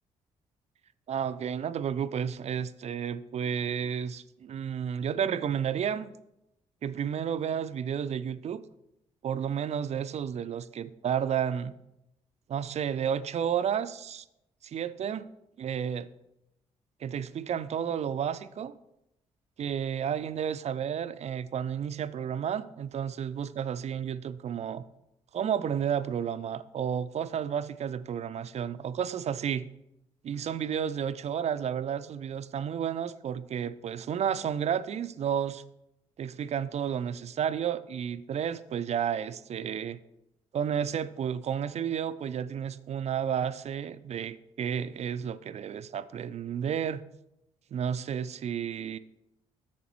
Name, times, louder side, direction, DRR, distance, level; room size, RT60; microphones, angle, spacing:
voice 1, 1.1-6.1 6.8-8.6 9.2-11.7 12.5-14.3 14.6-15.3 15.6-16.1 17.0-18.8 19.6-24.8 25.3-29.7 30.2-35.6 36.2-40.0 40.5-47.0 47.7-49.0, right 8 dB, 40° right, 14 dB, 0.5 m, -31 dB
11.5 x 7.3 x 3.0 m, 0.86 s
figure-of-eight pair, 40°, 16 cm